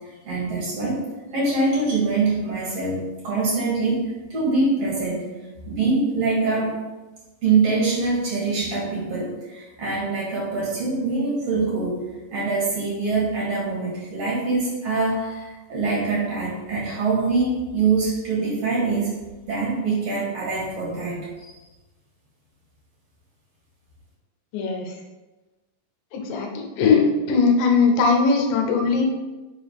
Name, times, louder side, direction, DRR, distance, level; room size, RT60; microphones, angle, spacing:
voice 1, 0.3-1.0 1.3-5.3 5.7-6.8 7.4-19.2 19.4-21.5, right 3 dB, 50° right, -6 dB, 2.4 m, -24 dB
voice 2, 24.5-24.9 26.1-29.0, left 4 dB, 75° left, 3 dB, 2.3 m, -20 dB
5.5 x 3.8 x 4.7 m, 1.1 s
omnidirectional pair, 4.4 m